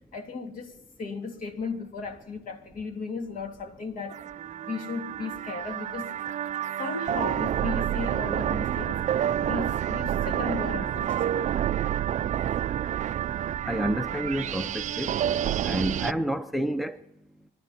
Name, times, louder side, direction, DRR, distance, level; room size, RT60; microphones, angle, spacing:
voice 1, 0.1-4.3 4.6-9.1 9.4-11.6, left 4 dB, 55° left, 3.3 m, -36 dB
sound 1, 4.1-16.1, right 10 dB, 45° right, 0.5 m, -29 dB
voice 2, 13.6-15.1 15.6-17.0, equal, ahead, 0.7 m, -29 dB
26.5 x 12.0 x 4.3 m
cardioid pair, 110°, 17 cm